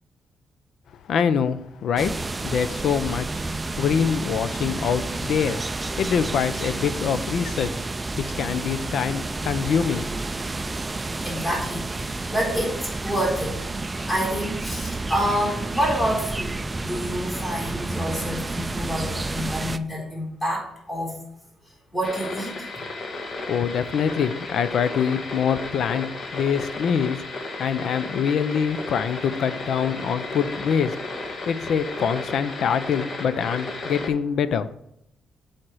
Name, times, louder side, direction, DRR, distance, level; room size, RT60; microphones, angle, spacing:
voice 1, 1.1-2.1 2.4-3.4 3.8-5.6 6.0-7.8 8.2-10.2 23.5-27.2 27.6-30.9 31.5-34.8, left 7 dB, 70° left, 0.5 m, -24 dB
sound 1, 2.0-19.8, right 2 dB, 20° right, 0.3 m, -30 dB
voice 2, 11.2-13.6 14.1-16.6 16.8-21.2 21.7-22.7, equal, 20° left, 3.7 m, -28 dB
sound 2, 22.0-34.1, left 2 dB, 45° left, 1.3 m, -34 dB
7.8 x 4.4 x 6.1 m
cardioid pair, 135°, 0 cm